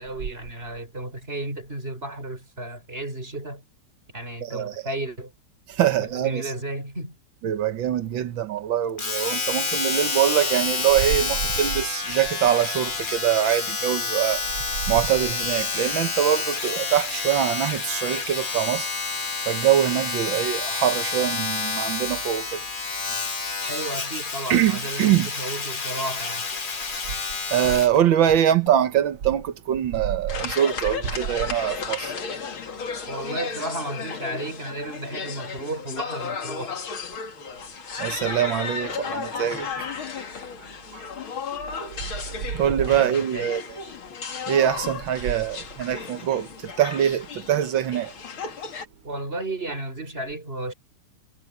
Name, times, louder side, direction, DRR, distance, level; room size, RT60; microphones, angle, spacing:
voice 1, 0.0-3.6 4.1-5.3 5.8-7.2 23.7-26.5 33.1-36.9 42.9-43.5 49.0-50.7, right 1 dB, 25° right, 6.3 m, -33 dB
voice 2, 4.4-4.7 5.7-6.5 7.4-14.4 14.9-18.9 19.5-22.6 24.5-25.3 27.5-32.1 38.0-39.7 40.9-41.0 42.5-43.6 44.5-48.1, right 10 dB, 65° right, 1.7 m, -23 dB
Domestic sounds home sounds, 9.0-28.0 28.7-28.8, left 4 dB, 30° left, 1.2 m, -29 dB
sound 1, 30.3-48.8, left 5 dB, 70° left, 3.0 m, -34 dB
omnidirectional pair, 2.4 m